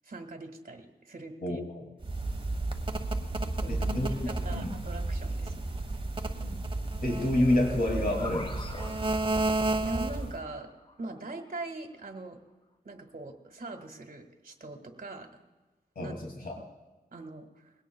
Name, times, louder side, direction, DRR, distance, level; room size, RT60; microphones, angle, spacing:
voice 1, 0.0-1.6 3.6-5.5 9.8-10.7 11.0-12.4 12.8-15.4 16.0-16.2 16.5-16.7 17.1-17.7, right 2 dB, 60° right, 4 dB, 1.9 m, -42 dB
voice 2, 1.4-1.9 3.7-4.1 4.5-4.7 6.4-6.6 7.0-8.8 16.0-16.5, left 1 dB, 65° left, 1 dB, 2.7 m, -29 dB
sound 1, 2.0-10.4, right 2 dB, 35° right, 1.4 m, -32 dB
sound 2, 7.8-11.6, left 2 dB, 30° left, 1.7 m, -46 dB
21.5 x 17.0 x 2.4 m, 1.2 s
wide cardioid pair, 85°, 17 cm